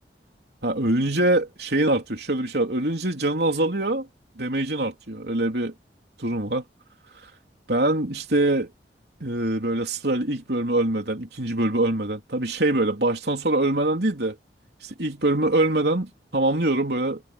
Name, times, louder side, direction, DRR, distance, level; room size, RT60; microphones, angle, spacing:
voice 1, 0.6-4.1 4.4-5.7 6.2-6.6 7.7-8.7 9.2-14.4 14.8-17.2, right 1 dB, 65° right, 3.7 m, -24 dB
head